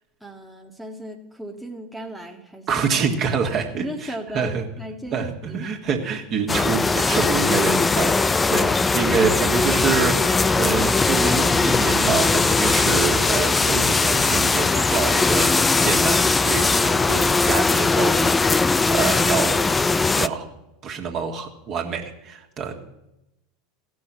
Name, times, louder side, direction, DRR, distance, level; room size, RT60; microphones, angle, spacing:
voice 1, 0.2-2.9 3.8-5.7, right 1 dB, ahead, 0 dB, 1.4 m, -36 dB
voice 2, 2.7-4.7 5.1-19.7 20.0-20.5 20.8-22.9, right 6 dB, 40° right, 2 dB, 1.8 m, -26 dB
sound 1, 6.5-20.3, left 3 dB, 15° left, 0.4 m, -20 dB
15.5 x 6.3 x 7.4 m, 0.90 s
figure-of-eight pair, 80°, 0 cm